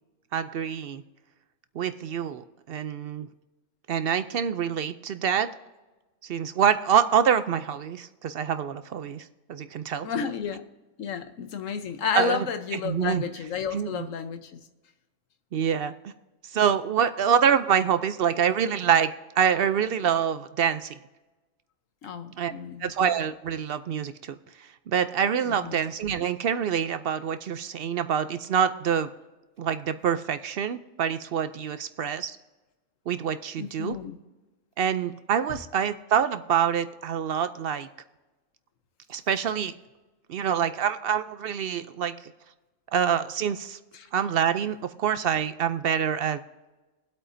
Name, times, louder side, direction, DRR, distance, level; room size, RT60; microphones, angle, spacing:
voice 1, 0.3-1.0 1.8-3.3 3.9-5.5 6.2-10.3 12.1-12.5 12.7-13.2 13.7-14.1 15.5-16.1 16.5-21.0 22.4-22.5 22.8-29.1 29.6-32.4 33.1-34.0 34.8-37.9 39.1-39.7 40.3-42.1 42.9-43.8 44.1-46.4, right 8 dB, 65° right, 0.6 m, -26 dB
voice 2, 10.0-10.6 11.0-14.6 22.0-22.9 25.5-25.8 33.6-34.2 43.9-44.1, left 7 dB, 70° left, 1.2 m, -31 dB
22.5 x 8.2 x 2.6 m
omnidirectional pair, 1.4 m